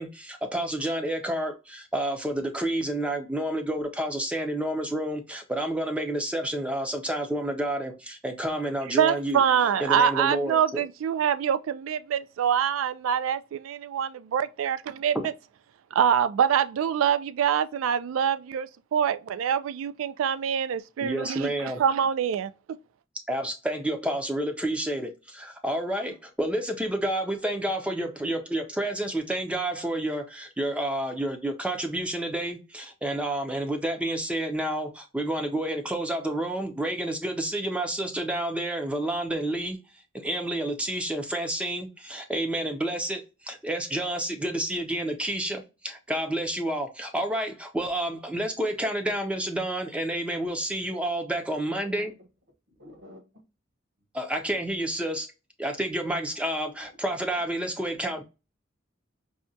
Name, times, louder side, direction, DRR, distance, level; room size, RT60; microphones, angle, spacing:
voice 1, 0.0-9.4 9.8-10.8 15.1-15.2 21.0-21.8 23.3-39.8 40.1-52.1 54.1-55.3 55.6-58.2, right 1 dB, 5° right, 0.4 m, -29 dB
voice 2, 8.9-15.2 15.9-22.5, right 8 dB, 85° right, 0.3 m, -25 dB
voice 3, 51.5-52.0 52.8-53.2 56.8-56.9 58.1-58.2, left 1 dB, 65° right, 1.1 m, -49 dB
4.7 x 2.2 x 2.6 m
head